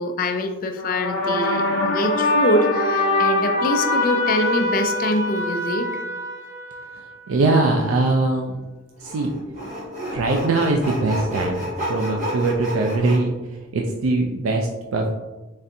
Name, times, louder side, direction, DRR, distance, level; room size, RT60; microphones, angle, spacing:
voice 1, 0.0-5.9, left 1 dB, 45° left, 6 dB, 0.4 m, -24 dB
sound 1, 0.8-7.1, left 2 dB, 70° left, 0.8 m, -23 dB
voice 2, 7.3-8.6 9.0-9.3 10.1-13.4 13.7-15.1, right 2 dB, 80° right, 2 dB, 0.4 m, -21 dB
Sawing, 7.8-7.9 9.0-13.2, equal, 35° right, 1.5 m, -29 dB
4.0 x 3.3 x 2.6 m, 1.1 s
head